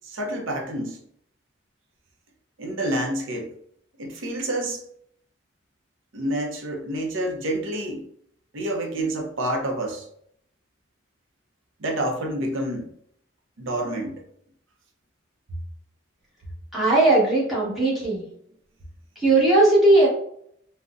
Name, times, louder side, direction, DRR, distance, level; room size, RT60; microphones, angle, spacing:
voice 1, 0.0-1.0 2.6-3.5 4.0-4.8 6.1-8.1 8.5-10.1 11.8-12.9 13.6-14.2, right 1 dB, 85° right, 2 dB, 0.6 m, -28 dB
voice 2, 16.7-18.2 19.2-20.1, right 2 dB, ahead, -8 dB, 1.1 m, -18 dB
3.7 x 2.1 x 2.4 m, 0.68 s
head